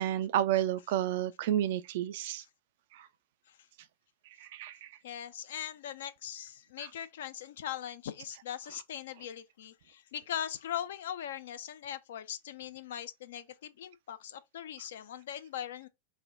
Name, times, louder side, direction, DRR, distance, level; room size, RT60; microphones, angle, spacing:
voice 1, 0.0-2.4 2.9-3.1 4.4-4.9 6.8-6.9, right 11 dB, 50° right, 0.3 m, -31 dB
voice 2, 5.0-15.9, left 10 dB, 60° left, 0.3 m, -40 dB
3.2 x 2.2 x 3.8 m
figure-of-eight pair, 90°, 0 cm